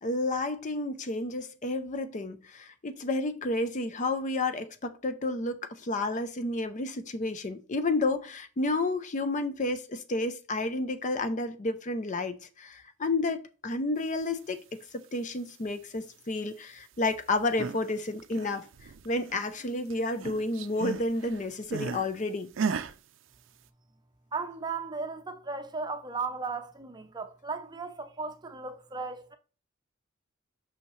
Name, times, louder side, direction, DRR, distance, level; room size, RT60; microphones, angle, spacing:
voice 1, 0.0-18.6 19.0-22.5, left 2 dB, 40° left, 0.5 m, -31 dB
sound 1, 17.3-17.9 18.2-19.6 19.9-22.1 22.5-22.9, right 5 dB, 70° right, 0.4 m, -35 dB
voice 2, 24.3-29.4, right 4 dB, 20° right, 0.6 m, -36 dB
5.6 x 5.6 x 3.1 m
head